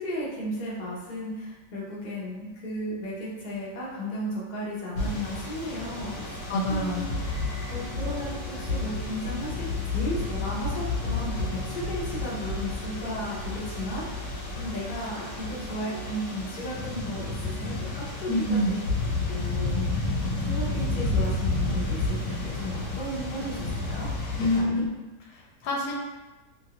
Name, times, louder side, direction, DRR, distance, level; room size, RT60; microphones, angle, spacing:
voice 1, 0.0-6.4 6.7-7.1 7.7-14.2 14.6-18.8 19.3-24.1 24.5-24.8, equal, 40° left, -6 dB, 0.6 m, -35 dB
sound 1, 4.9-24.6, left 2 dB, 60° left, 1.0 m, -31 dB
Organ, 5.9-16.9, left 1 dB, 80° right, 0.5 m, -49 dB
voice 2, 6.5-7.0 18.3-18.7 24.4-24.9 25.3-25.9, left 1 dB, 85° left, -2 dB, 1.2 m, -26 dB
2.9 x 2.6 x 2.8 m, 1.2 s
omnidirectional pair, 1.7 m